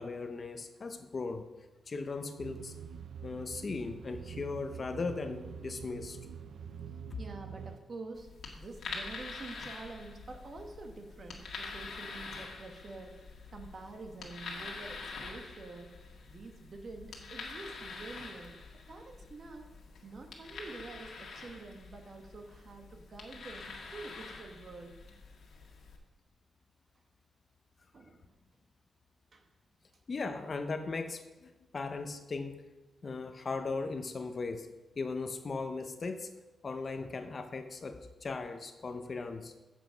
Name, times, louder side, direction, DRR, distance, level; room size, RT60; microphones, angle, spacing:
voice 1, 0.0-1.5 1.9-2.7 3.2-6.2 30.1-32.6 33.0-34.7 35.0-36.3 36.6-39.5, left 4 dB, 40° left, 7 dB, 0.7 m, -38 dB
sound 1, 2.4-7.8, right 7 dB, 80° right, 0.5 m, -45 dB
voice 2, 7.2-8.3 8.5-18.5 18.9-19.7 20.0-24.9 27.9-28.3 29.3-29.5, right 3 dB, 45° right, 4 dB, 1.2 m, -47 dB
sound 2, 8.1-26.0, left 4 dB, 80° left, 1.8 m, -46 dB
8.2 x 7.4 x 5.1 m, 1.1 s
wide cardioid pair, 140°, 0 cm